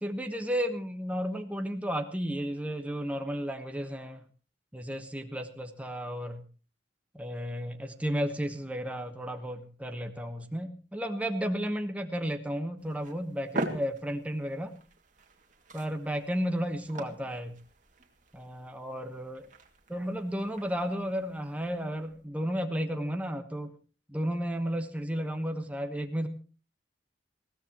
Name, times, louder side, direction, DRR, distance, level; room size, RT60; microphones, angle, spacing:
voice 1, 0.0-4.2 4.7-6.4 7.1-14.7 15.7-17.6 18.3-19.5 19.9-23.7 24.1-26.3, equal, 10° right, 5 dB, 1.2 m, -33 dB
sound 1, 12.8-22.3, right 2 dB, 45° right, 2.3 m, -43 dB
21.0 x 16.5 x 3.0 m, 0.36 s
head